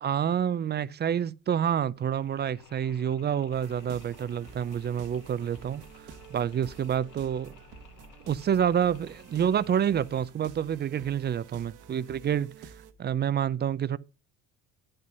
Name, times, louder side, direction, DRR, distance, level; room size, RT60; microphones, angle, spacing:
voice 1, 0.0-7.6 8.3-12.7 13.0-14.0, right 9 dB, 30° right, 0.4 m, -28 dB
Mechanisms, 2.0-11.7, left 8 dB, 60° left, 1.8 m, -56 dB
sound 1, 3.5-12.9, right 6 dB, 60° right, 1.3 m, -50 dB
9.4 x 5.6 x 5.1 m
cardioid pair, 105°, 36 cm